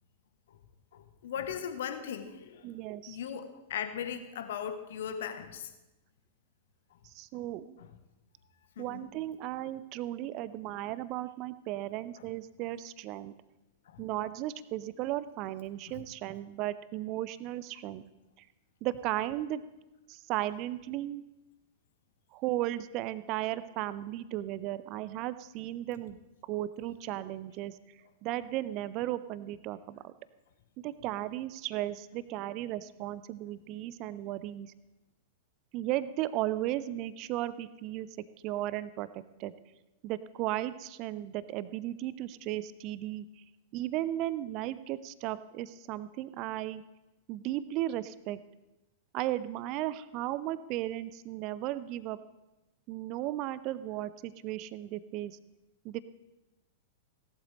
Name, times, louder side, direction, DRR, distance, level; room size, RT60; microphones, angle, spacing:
voice 1, 0.9-2.7 3.1-5.7 7.8-7.9 8.8-9.1 12.2-12.3 13.9-14.0 15.9-16.0, left 8 dB, 55° left, 9 dB, 1.1 m, -38 dB
voice 2, 2.6-3.2 7.0-7.8 8.8-13.3 14.0-18.0 18.8-19.6 20.1-21.2 22.3-26.2 26.5-27.8 28.2-30.1 30.8-34.7 35.7-38.1 38.4-39.1 39.4-39.5 40.0-43.3 43.7-46.8 47.3-48.4 49.1-52.2 52.9-55.4 55.8-56.0, right 14 dB, 40° right, 16 dB, 0.6 m, -35 dB
17.5 x 12.0 x 3.3 m, 0.99 s
figure-of-eight pair, 95°, 0 cm